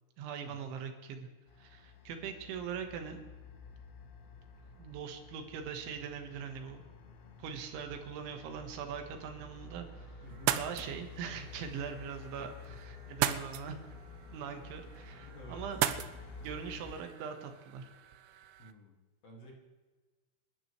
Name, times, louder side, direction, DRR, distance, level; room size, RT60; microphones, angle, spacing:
voice 1, 0.2-1.3 1.6-3.2 4.8-6.8 7.4-10.2 10.6-13.8 14.3-15.8 16.4-17.8, right 7 dB, 70° right, 5 dB, 3.8 m, -41 dB
sound 1, 1.5-16.9, left 4 dB, 85° left, 4.2 m, -51 dB
voice 2, 10.2-10.6 12.7-12.8 15.2-15.6 18.6-19.0 19.2-19.5, right 1 dB, 40° left, -1 dB, 2.6 m, -52 dB
sound 2, 10.3-18.7, right 12 dB, 90° right, 2.6 m, -38 dB
27.5 x 12.5 x 3.3 m, 1.3 s
omnidirectional pair, 5.8 m